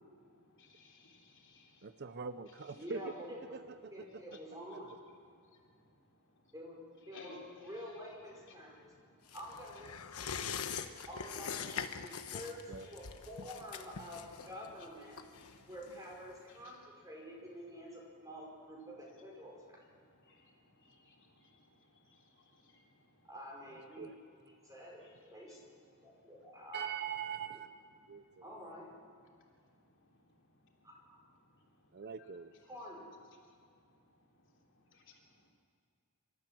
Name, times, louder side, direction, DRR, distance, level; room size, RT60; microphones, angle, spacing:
voice 1, 0.2-1.9 4.3-4.4 5.3-6.0 6.4-6.5 7.1-7.4 8.5-9.4 12.2-12.3 12.8-12.9 15.3-15.7 16.5-16.8 20.0-23.3 25.0-25.1 25.5-25.6 25.9-26.2 28.1-28.4 29.3-30.5 30.8-30.9 31.4-31.9 33.3-35.5, left 3 dB, 55° left, 0 dB, 3.3 m, -64 dB
voice 2, 1.8-3.1 3.5-4.2 4.8-5.0 12.7-12.9 23.7-24.1 26.7-27.7 28.1-28.4 31.9-32.5, right 6 dB, 50° right, 11 dB, 0.6 m, -43 dB
voice 3, 2.7-3.6 3.9-4.9 6.5-8.8 9.3-10.3 11.1-15.2 15.7-19.6 23.2-25.6 26.0-26.9 28.4-28.9 30.8-31.2 32.7-33.1, equal, 15° right, -2 dB, 5.2 m, -48 dB
sound 1, 9.3-16.4 16.7-16.8, left 6 dB, 80° left, 1.1 m, -43 dB
25.0 x 13.5 x 7.6 m, 2.3 s
head